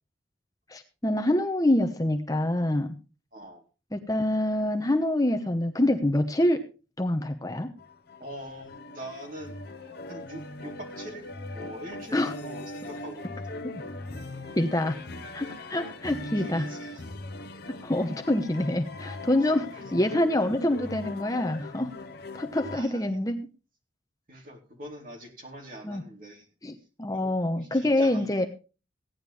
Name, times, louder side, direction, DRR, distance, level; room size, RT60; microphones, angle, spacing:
voice 1, 0.7-2.9 3.9-6.6 7.0-7.7 12.1-12.3 14.6-15.0 15.3-16.7 17.7-21.9 22.3-23.4 25.8-26.0 26.6-28.5, left 1 dB, 20° left, 6 dB, 1.0 m, -26 dB
voice 2, 3.3-3.6 8.2-9.6 10.1-13.6 16.0-17.1 19.7-20.0 22.7-23.2 24.3-26.5 27.1-28.3, right 1 dB, 45° right, 0 dB, 3.8 m, -44 dB
sound 1, 7.8-22.8, left 2 dB, 55° left, 1.0 m, -40 dB
17.0 x 10.5 x 3.4 m, 0.33 s
head